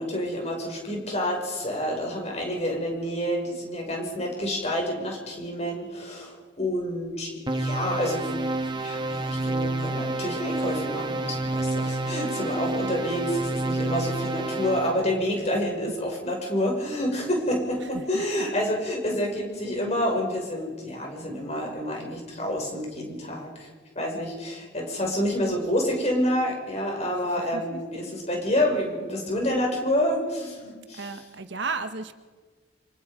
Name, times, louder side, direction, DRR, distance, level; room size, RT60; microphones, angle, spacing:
voice 1, 0.0-8.3 8.7-23.7 23.9-31.1, equal, 35° left, 0 dB, 6.0 m, -28 dB
sound 1, 7.5-15.0, right 2 dB, 25° right, 1.4 m, -29 dB
voice 2, 17.8-18.5 27.3-28.2 31.0-32.2, right 3 dB, 65° right, 8 dB, 1.4 m, -35 dB
28.0 x 26.0 x 5.1 m, 1.4 s
head